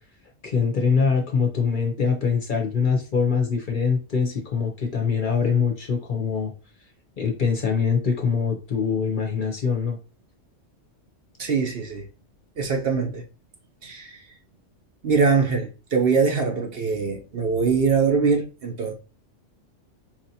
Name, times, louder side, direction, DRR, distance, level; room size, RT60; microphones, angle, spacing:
voice 1, 0.4-6.5 7.2-10.0, left 5 dB, 45° left, 0.8 m, -23 dB
voice 2, 11.4-12.1 12.6-13.2 13.8-14.2 15.0-18.9, right 5 dB, 55° right, 0.9 m, -22 dB
4.9 x 2.9 x 2.7 m
omnidirectional pair, 1.3 m